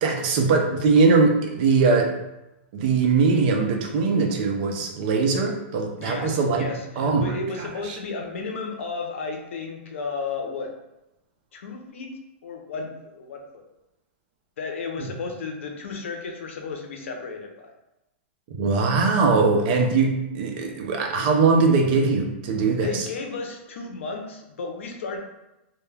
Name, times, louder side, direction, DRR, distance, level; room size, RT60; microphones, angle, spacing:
voice 1, 0.0-2.1 2.7-6.7 7.0-8.0 18.5-23.1, right 4 dB, 50° right, 2 dB, 0.5 m, -21 dB
voice 2, 6.0-10.7 11.5-13.6 14.6-17.7 22.8-25.2, left 4 dB, 90° left, 2 dB, 0.5 m, -33 dB
2.2 x 2.1 x 3.2 m, 0.92 s
supercardioid pair, 150°, 7 cm